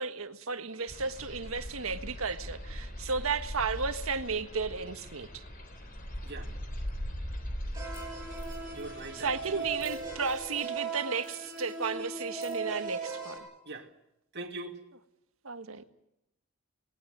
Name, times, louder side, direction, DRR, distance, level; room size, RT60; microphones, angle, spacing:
voice 1, 0.0-5.4 9.1-13.5 15.4-15.8, right 5 dB, 75° right, 1.6 m, -34 dB
sound 1, 0.9-10.5, equal, 40° left, 3.8 m, -41 dB
loose change, 7.7-7.8 7.9-8.0 8.3-9.1 9.6-10.8 11.2-12.8, left 5 dB, 85° left, 7.8 m, -57 dB
sound 2, 7.7-13.4, right 4 dB, 15° right, 6.6 m, -38 dB
voice 2, 8.7-9.7 13.6-13.9 14.3-14.8, right 2 dB, 50° right, 2.5 m, -42 dB
19.5 x 19.0 x 9.2 m
head